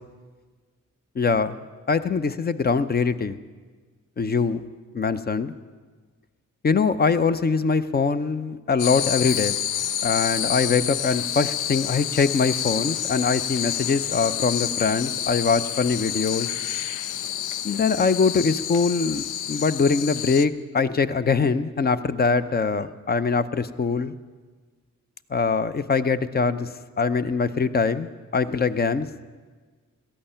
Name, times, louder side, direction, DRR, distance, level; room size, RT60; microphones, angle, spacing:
voice 1, 1.2-1.6 1.9-3.4 4.2-4.6 4.9-5.5 6.6-9.5 10.0-16.5 17.6-24.1 25.3-29.1, left 5 dB, 30° left, 13 dB, 0.7 m, -23 dB
sound 1, 8.8-20.5, left 10 dB, 80° left, 0.6 m, -28 dB
17.5 x 13.0 x 5.7 m, 1.4 s
cardioid pair, 95°, 31 cm